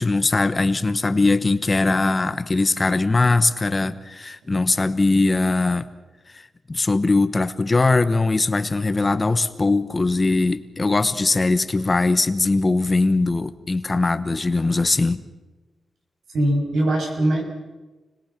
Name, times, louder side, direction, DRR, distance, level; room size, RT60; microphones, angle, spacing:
voice 1, 0.0-5.8 6.3-15.2, left 3 dB, 25° left, 11 dB, 1.0 m, -21 dB
voice 2, 16.3-17.4, right 1 dB, 85° right, 1 dB, 6.9 m, -21 dB
30.0 x 21.0 x 6.0 m, 1.2 s
wide cardioid pair, 140°, 0 cm